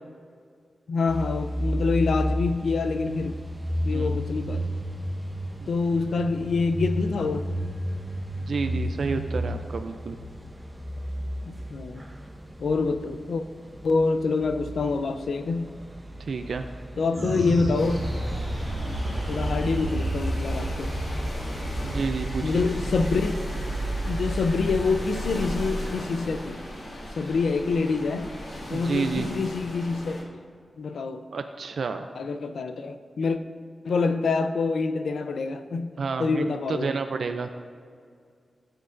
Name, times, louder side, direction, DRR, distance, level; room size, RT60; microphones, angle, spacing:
voice 1, 0.9-3.3 3.8-4.7 5.7-7.5 11.5-12.0 12.6-13.4 13.8-15.7 17.0-18.0 19.3-20.9 22.4-23.4 23.8-26.6 27.2-28.3 28.7-30.2 30.8-31.2 32.2-33.4 33.8-35.9 36.2-37.0, left 4 dB, 90° left, 9 dB, 0.5 m, -26 dB
sound 1, 1.1-19.4, equal, 10° right, 1.1 m, -33 dB
voice 2, 3.9-4.2 5.6-5.7 8.4-10.2 16.3-16.6 21.8-22.7 28.7-29.3 31.3-32.1 36.0-37.5, right 4 dB, 75° right, 7 dB, 0.4 m, -30 dB
sound 2, 17.1-27.8, right 1 dB, 45° right, 1.3 m, -31 dB
sound 3, 17.8-30.2, left 1 dB, 70° left, 2.0 m, -38 dB
13.5 x 7.9 x 2.6 m, 2.2 s
wide cardioid pair, 100°, 0 cm